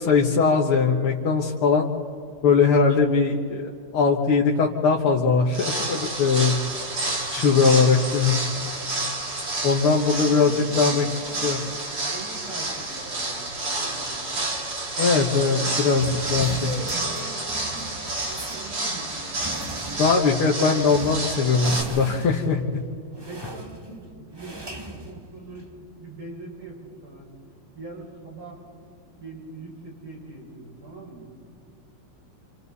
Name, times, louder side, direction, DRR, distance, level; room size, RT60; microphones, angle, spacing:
voice 1, 0.0-1.9 2.4-6.5 7.3-8.4 9.6-11.0 11.4-11.6 15.0-16.0 16.3-16.6 20.0-22.6, left 5 dB, 75° left, -2 dB, 2.2 m, -20 dB
sound 1, 5.5-21.8, right 2 dB, 45° right, 3.0 m, -30 dB
voice 2, 10.1-11.7 12.1-14.5 15.5-15.8 16.4-18.0 18.2-19.1 23.3-25.7 26.0-27.2 27.7-28.6 29.2-31.3, right 2 dB, 80° right, -4 dB, 7.6 m, -41 dB
sound 2, 16.0-25.8, right 1 dB, 15° right, 0.9 m, -40 dB
29.0 x 27.5 x 4.2 m, 2.4 s
omnidirectional pair, 2.4 m